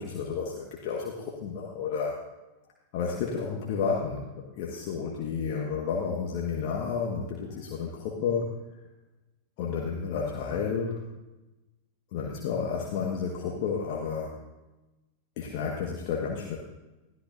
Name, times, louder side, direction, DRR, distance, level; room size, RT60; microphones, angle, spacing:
voice 1, 0.0-2.2 2.9-8.5 9.6-11.1 12.1-14.4 15.4-16.6, left 6 dB, 45° left, -1 dB, 1.5 m, -31 dB
20.5 x 14.0 x 2.6 m, 1.1 s
figure-of-eight pair, 90°, 0 cm